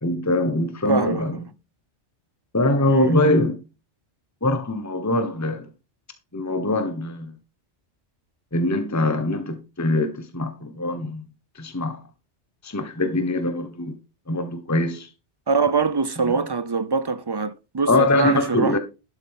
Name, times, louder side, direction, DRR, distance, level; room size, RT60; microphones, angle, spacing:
voice 1, 0.0-1.4 2.5-3.6 4.4-5.6 6.3-7.3 8.5-11.2 11.5-12.0 12.6-13.9 14.3-15.1 17.9-18.8, left 2 dB, 15° left, 1.1 m, -23 dB
voice 2, 0.9-1.2 2.9-3.2 15.5-18.8, right 4 dB, 35° right, 0.4 m, -23 dB
12.0 x 8.1 x 3.6 m
omnidirectional pair, 1.2 m